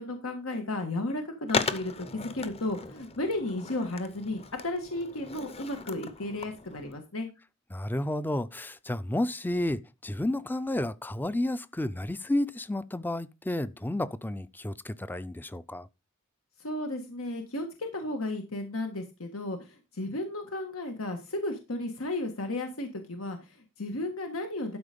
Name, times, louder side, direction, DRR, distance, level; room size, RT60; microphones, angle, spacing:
voice 1, 0.0-7.3 16.6-24.8, left 2 dB, 90° left, 1.6 m, -34 dB
Skateboard, 1.5-7.0, left 4 dB, 30° left, 0.8 m, -36 dB
voice 2, 7.7-15.9, left 1 dB, 10° left, 0.4 m, -31 dB
12.0 x 4.8 x 5.2 m
head